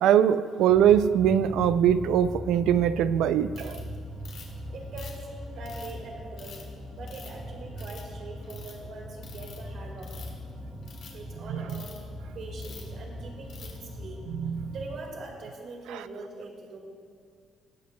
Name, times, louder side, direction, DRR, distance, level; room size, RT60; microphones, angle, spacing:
voice 1, 0.0-3.8 14.4-14.7, right 9 dB, 90° right, 14 dB, 0.3 m, -22 dB
sound 1, 0.7-15.1, equal, 5° right, 1.2 m, -40 dB
Ratchet pawl, 3.5-3.8 4.2-4.6 5.0-5.9 6.4-6.6 7.1-7.4 7.8-8.1 8.4-8.7 9.2-9.6 10.0-10.4 10.8-11.1 11.7-12.0 12.6-12.9 13.5-13.8, left 7 dB, 65° left, 1.8 m, -47 dB
voice 2, 4.7-6.6 7.0-10.2 11.1-11.9 12.3-14.3 14.7-16.8, right 2 dB, 50° right, 0 dB, 1.8 m, -42 dB
20.0 x 8.2 x 2.2 m, 2.2 s
cardioid pair, 170°, 0 cm